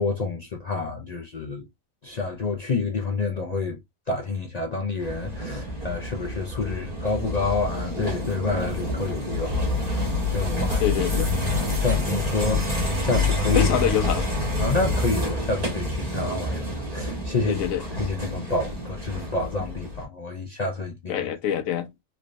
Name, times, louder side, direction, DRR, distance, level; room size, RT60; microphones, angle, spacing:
voice 1, 0.0-1.7 2.0-3.8 4.1-11.0 11.4-13.7 14.6-17.6 18.0-21.2, left 3 dB, 55° left, 0.4 m, -28 dB
sound 1, 5.0-20.0, left 2 dB, 30° right, 1.5 m, -27 dB
voice 2, 10.8-11.3 13.5-14.3 17.5-17.8 21.1-21.9, left 10 dB, 85° left, 1.1 m, -25 dB
3.3 x 3.0 x 2.5 m
omnidirectional pair, 1.4 m